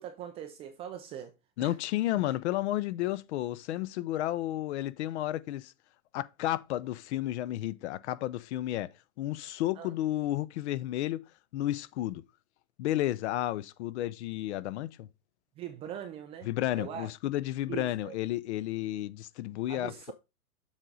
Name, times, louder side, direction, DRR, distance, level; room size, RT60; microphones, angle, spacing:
voice 1, 0.0-1.3 1.6-1.8 9.8-9.9 15.6-16.5 16.7-17.1 17.7-18.1 19.7-20.1, right 10 dB, 15° right, 0.4 m, -41 dB
voice 2, 1.6-5.7 6.1-8.9 9.2-11.2 11.5-12.2 12.8-15.1 16.5-20.1, left 14 dB, 50° left, 0.6 m, -32 dB
7.3 x 4.9 x 3.9 m
hypercardioid pair, 125°, 44 cm